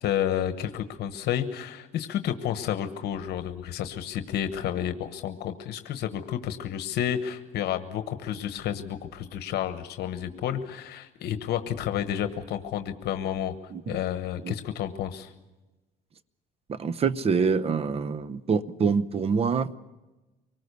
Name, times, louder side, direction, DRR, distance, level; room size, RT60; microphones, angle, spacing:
voice 1, 0.0-13.5 13.9-15.3, left 10 dB, 75° left, 9 dB, 1.2 m, -30 dB
voice 2, 16.7-19.7, right 5 dB, 35° right, 16 dB, 0.8 m, -25 dB
25.0 x 19.0 x 6.8 m, 1.1 s
cardioid pair, 110°, 17 cm